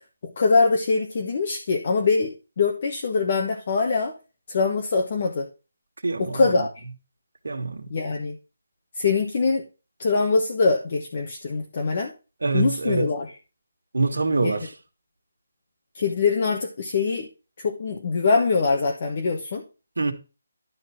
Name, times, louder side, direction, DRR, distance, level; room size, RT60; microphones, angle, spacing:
voice 1, 0.2-4.1 4.5-5.5 6.2-6.8 7.9-8.4 8.9-9.6 10.0-12.1 12.5-13.3 14.4-14.6 15.9-17.3 17.6-19.6, left 4 dB, 35° left, 1.4 m, -23 dB
voice 2, 6.0-6.7 7.4-7.9 12.4-13.1 13.9-14.7 20.0-20.1, right 3 dB, 85° right, 2.0 m, -25 dB
11.5 x 4.3 x 6.0 m
hypercardioid pair, 175°, 0 cm